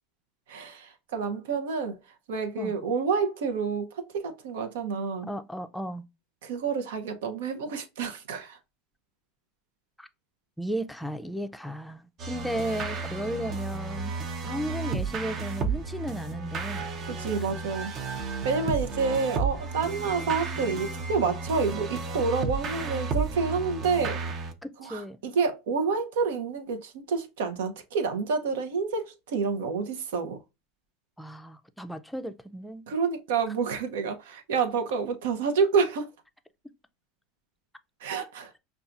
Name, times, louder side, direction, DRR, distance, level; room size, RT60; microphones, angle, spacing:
voice 1, 0.5-5.3 6.4-8.6 17.1-24.2 24.8-30.4 32.9-36.1 38.0-38.5, right 5 dB, 80° right, 0.7 m, -29 dB
voice 2, 5.3-6.0 10.0-10.1 10.6-14.1 14.4-16.9 17.4-17.5 24.6-25.2 31.2-32.9, right 1 dB, 5° left, 0.5 m, -34 dB
sound 1, 12.2-24.5, right 4 dB, 45° right, 0.7 m, -33 dB
5.5 x 2.3 x 2.5 m
hypercardioid pair, 100°, 0 cm